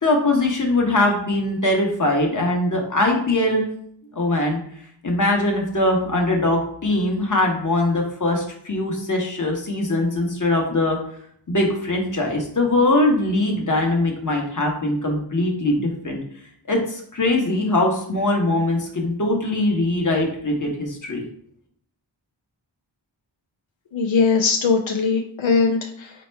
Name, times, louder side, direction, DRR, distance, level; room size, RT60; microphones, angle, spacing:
voice 1, 0.0-3.7 4.2-4.6 5.0-11.0 11.5-16.2 16.7-21.2, left 2 dB, 40° left, 1 dB, 1.1 m, -21 dB
voice 2, 23.9-26.1, left 4 dB, 85° left, 2 dB, 0.5 m, -20 dB
4.0 x 2.2 x 4.4 m, 0.66 s
wide cardioid pair, 50°, 45 cm